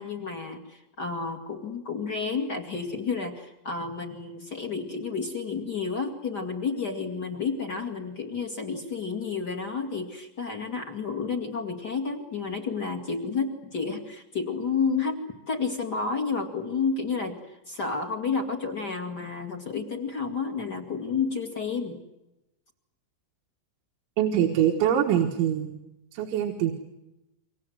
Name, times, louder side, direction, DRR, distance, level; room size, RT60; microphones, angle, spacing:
voice 1, 0.0-15.2 15.5-22.0, left 5 dB, 35° left, 5 dB, 1.7 m, -31 dB
voice 2, 24.2-25.8 26.1-26.7, right 10 dB, 90° right, 3 dB, 3.9 m, -24 dB
28.0 x 24.5 x 7.9 m, 0.94 s
omnidirectional pair, 5.2 m